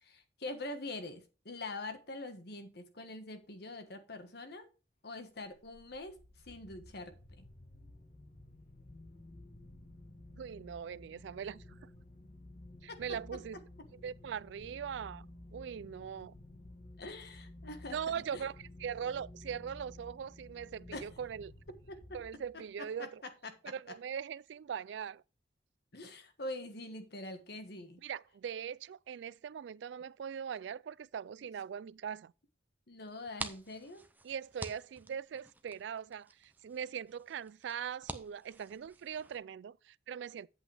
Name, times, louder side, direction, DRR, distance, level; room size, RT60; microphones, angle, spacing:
voice 1, 0.0-4.7 5.0-6.2 6.5-7.4 12.9-13.0 17.0-18.5 20.9-21.1 21.9-22.0 23.4-23.7 25.9-28.0 32.9-34.0, left 2 dB, 60° left, 1.4 m, -44 dB
sound 1, 5.4-22.8, left 1 dB, 40° left, 1.2 m, -54 dB
voice 2, 10.3-11.8 12.8-13.6 14.0-15.3 15.5-16.3 17.9-21.5 22.1-23.2 23.6-25.2 28.0-32.3 34.2-40.5, right 7 dB, 70° right, 0.3 m, -41 dB
sound 2, 33.1-39.4, right 2 dB, 10° right, 0.6 m, -48 dB
8.3 x 8.0 x 3.4 m
head